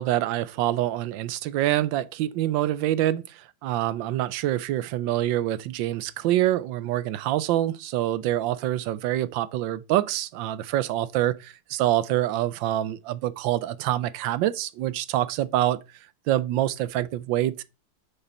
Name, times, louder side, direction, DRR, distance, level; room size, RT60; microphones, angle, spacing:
voice 1, 0.0-15.8 16.3-17.6, right 13 dB, 85° right, 1.3 m, -26 dB
7.0 x 5.4 x 5.3 m
omnidirectional pair, 2.0 m